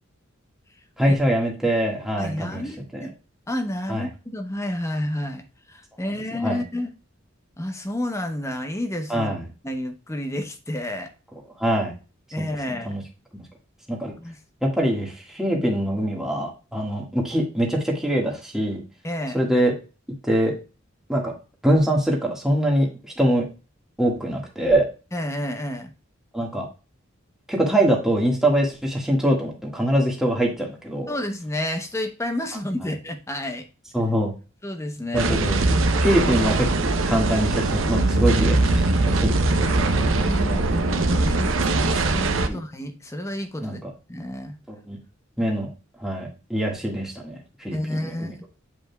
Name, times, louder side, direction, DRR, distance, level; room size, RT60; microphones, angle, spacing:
voice 1, 1.0-2.6 2.9-3.1 3.9-4.1 6.4-6.6 9.1-9.4 11.6-11.9 12.4-12.5 12.9-13.0 13.3-13.4 13.9-14.1 14.6-18.8 19.3-19.7 20.3-20.5 21.1-21.3 21.6-22.9 23.2-23.4 24.0-24.9 26.3-26.7 27.5-31.1 33.9-34.3 35.1-36.7 37.1-40.1 42.5-42.6 43.6-43.9 44.7-45.0 45.4-45.7 46.0-47.4 47.6-48.3, right 1 dB, 5° right, 1.7 m, -23 dB
voice 2, 2.2-3.1 3.5-6.9 7.6-9.3 9.6-11.1 12.3-13.0 14.2-14.4 19.0-19.4 25.1-25.9 31.1-33.7 34.6-35.3 40.0-43.8 44.1-44.6 47.7-48.5, left 1 dB, 15° left, 0.8 m, -30 dB
sound 1, 35.1-42.5, right 2 dB, 80° right, 0.8 m, -21 dB
8.9 x 5.0 x 2.3 m
head